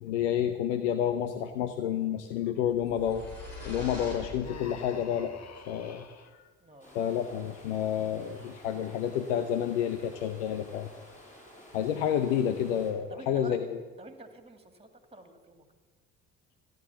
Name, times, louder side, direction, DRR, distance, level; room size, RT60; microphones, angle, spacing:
voice 1, 0.0-3.3 3.6-5.3 5.7-6.0 6.3-6.4 6.9-10.9 11.7-13.8, left 9 dB, 80° left, 9 dB, 0.8 m, -29 dB
sound 1, 2.6-5.1, left 1 dB, 65° left, 5.2 m, -43 dB
Human voice, 4.4-6.3, left 6 dB, 45° left, 1.6 m, -47 dB
voice 2, 6.6-6.9 13.1-13.5 14.0-15.6, right 2 dB, 15° right, 8 dB, 2.5 m, -48 dB
sound 2, 6.8-12.9, left 1 dB, 20° left, 6.2 m, -52 dB
14.5 x 10.5 x 7.2 m, 1.4 s
hypercardioid pair, 55°, 36 cm